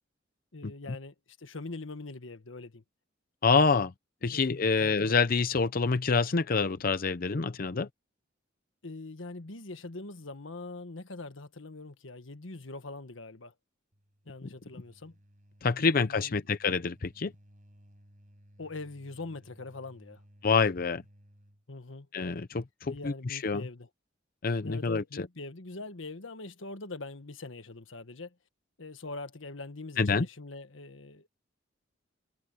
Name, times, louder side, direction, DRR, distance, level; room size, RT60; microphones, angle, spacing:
voice 1, 0.5-2.8 4.3-5.2 8.8-13.5 14.2-15.2 15.8-16.5 18.6-20.2 21.7-22.1 22.9-23.9 24.6-28.3 28.8-31.3, left 3 dB, 85° left, 1.5 m, -43 dB
voice 2, 3.4-3.9 4.2-7.9 15.6-17.3 20.4-21.0 22.1-23.6 24.4-25.3 30.0-30.3, left 4 dB, 50° left, 0.6 m, -27 dB
sound 1, 13.9-21.7, equal, 45° right, 5.8 m, -59 dB
head